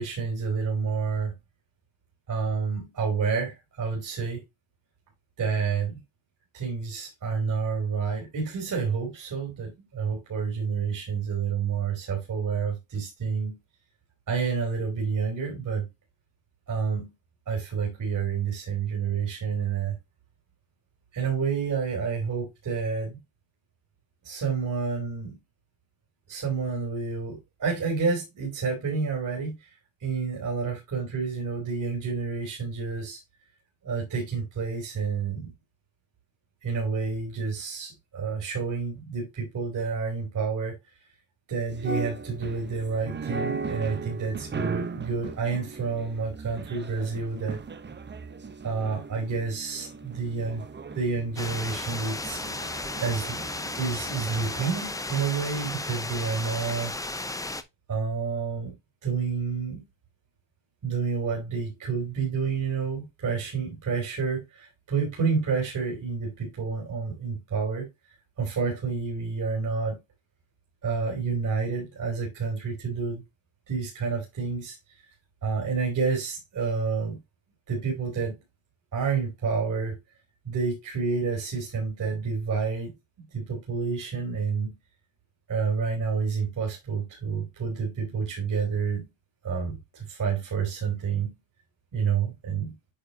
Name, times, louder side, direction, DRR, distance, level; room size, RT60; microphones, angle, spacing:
voice 1, 0.0-1.3 2.3-4.4 5.4-6.0 6.5-13.6 14.3-15.9 16.7-17.1 17.5-19.9 21.1-23.2 24.2-25.4 26.3-29.7 30.0-33.2 33.8-35.5 36.6-40.7 41.5-47.6 48.6-50.6 50.9-52.4 53.0-53.4 53.7-56.9 57.9-58.7 59.0-59.8 60.8-67.9 68.4-70.0 70.8-73.2 73.7-74.8 75.4-77.2 77.7-78.4 78.9-80.0 80.4-82.9 83.3-84.8 85.5-89.1 89.4-91.3 91.9-92.7, right 5 dB, 40° right, 3.4 m, -29 dB
sound 1, 41.7-55.0, right 4 dB, 20° right, 0.9 m, -38 dB
sound 2, 51.4-57.6, left 2 dB, 5° left, 0.6 m, -34 dB
8.6 x 4.9 x 2.8 m
cardioid pair, 115°, 48 cm